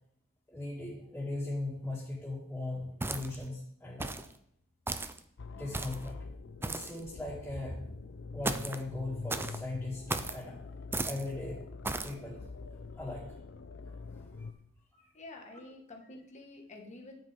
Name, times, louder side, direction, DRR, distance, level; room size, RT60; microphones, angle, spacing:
voice 1, 0.5-4.1 5.5-6.2 6.6-7.8 8.3-10.6 11.0-11.6 12.0-12.4 13.0-13.2 14.3-14.5 14.9-15.1, left 2 dB, 5° left, -10 dB, 2.4 m, -39 dB
sound 1, 3.0-3.5 4.0-4.3 4.9-5.2 5.7-6.1 6.6-7.0 8.4-8.8 9.3-9.6 10.1-10.4 10.9-11.3 11.8-12.1, right 2 dB, 10° right, 0.4 m, -35 dB
sound 2, 5.4-14.5, left 4 dB, 55° left, 0.5 m, -45 dB
voice 2, 15.1-17.2, left 2 dB, 30° left, 1 dB, 1.5 m, -49 dB
9.4 x 7.9 x 3.6 m, 0.70 s
head